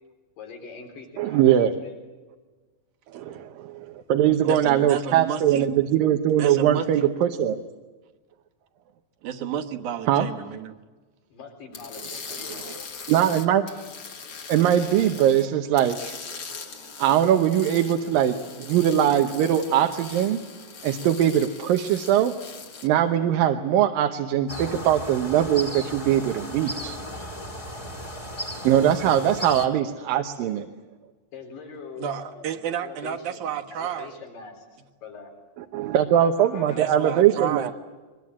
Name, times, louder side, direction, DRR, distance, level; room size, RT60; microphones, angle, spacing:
voice 1, 0.4-1.9 11.3-12.9 29.7-29.9 31.3-35.3 36.1-37.3, left 4 dB, 75° left, 3 dB, 5.6 m, -43 dB
voice 2, 1.2-1.7 3.1-7.6 10.1-10.3 13.1-13.7 14.5-16.2 17.0-20.4 20.8-22.3 22.8-27.0 28.6-30.7 35.7-37.7, right 10 dB, 85° right, 5 dB, 2.7 m, -21 dB
voice 3, 4.4-5.7 6.4-7.1 7.5-7.6 9.2-10.8 32.0-34.1 36.7-37.7, right 9 dB, 65° right, 5 dB, 2.7 m, -31 dB
sound 1, 11.7-15.5 15.8-22.9, left 5 dB, 45° left, 2.9 m, -40 dB
sound 2, 24.5-29.7, equal, 15° left, 1.5 m, -35 dB
23.0 x 21.5 x 8.7 m, 1.3 s
omnidirectional pair, 4.0 m